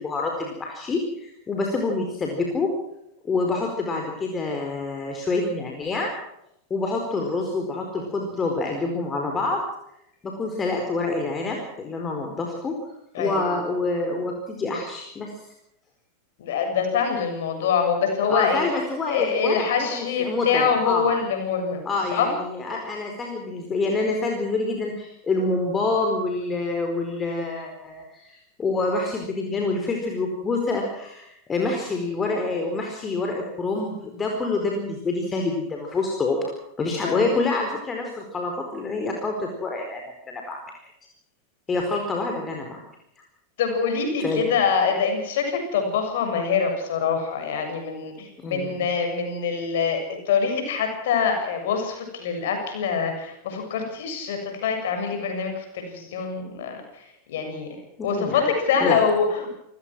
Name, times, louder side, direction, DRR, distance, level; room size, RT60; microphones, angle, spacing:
voice 1, 0.0-2.7 3.2-6.1 6.7-9.6 10.2-12.7 13.2-15.3 18.3-21.2 21.8-40.6 41.7-42.8 44.2-44.5 48.4-48.9 58.0-58.5 58.8-59.0, left 3 dB, 20° left, 2 dB, 4.5 m, -27 dB
voice 2, 16.4-18.6 19.1-21.8 22.1-22.3 37.0-37.3 43.6-50.0 50.3-57.7 58.0-59.5, left 6 dB, 55° left, 5 dB, 7.2 m, -25 dB
28.5 x 17.0 x 6.2 m, 0.80 s
figure-of-eight pair, 90°, 0 cm